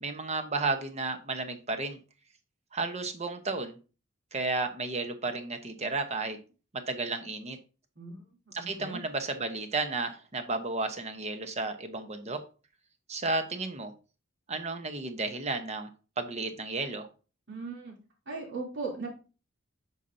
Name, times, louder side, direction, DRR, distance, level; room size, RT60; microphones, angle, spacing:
voice 1, 0.0-2.0 2.7-3.8 4.3-6.4 6.7-7.6 8.5-12.4 13.1-13.9 14.5-15.9 16.2-17.1, right 3 dB, 35° right, 8 dB, 0.9 m, -33 dB
voice 2, 8.6-9.0 17.5-17.9 18.3-19.1, right 3 dB, 60° right, -2 dB, 2.9 m, -37 dB
8.2 x 5.6 x 2.7 m, 0.34 s
head